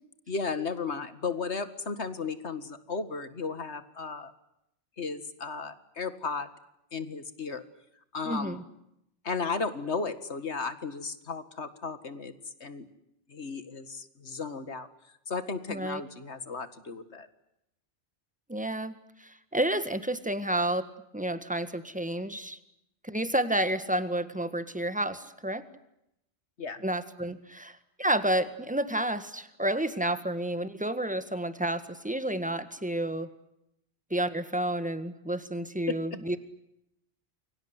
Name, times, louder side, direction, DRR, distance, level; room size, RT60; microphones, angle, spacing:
voice 1, 0.3-4.3 5.0-6.5 6.9-7.6 8.1-8.6 9.2-12.3 12.6-12.9 13.3-14.9 15.3-17.3 26.6-26.8 35.9-36.0, left 4 dB, 85° left, 11 dB, 2.2 m, -34 dB
voice 2, 8.2-8.6 15.7-16.0 18.5-20.8 21.1-22.6 23.0-25.6 26.8-33.3 34.1-36.4, right 1 dB, 5° right, 11 dB, 1.7 m, -30 dB
29.0 x 23.5 x 8.2 m, 0.82 s
omnidirectional pair, 1.1 m